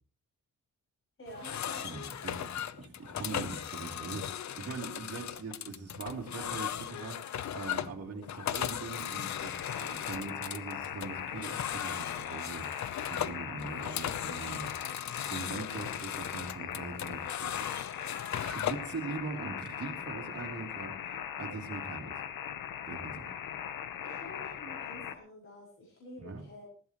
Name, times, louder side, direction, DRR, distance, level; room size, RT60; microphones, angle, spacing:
voice 1, 1.2-1.9 23.4-23.6 24.0-26.7, left 1 dB, 40° left, -3 dB, 7.5 m, -48 dB
sound 1, 1.3-18.9, left 10 dB, 60° left, 0.8 m, -38 dB
voice 2, 1.8-14.7 15.3-17.8 18.3-22.2 22.9-23.2 26.2-26.4, right 4 dB, 45° right, 0 dB, 3.5 m, -42 dB
sound 2, 8.9-25.2, left 9 dB, 90° left, 1.1 m, -40 dB
20.0 x 15.5 x 3.1 m, 0.37 s
wide cardioid pair, 135°, 33 cm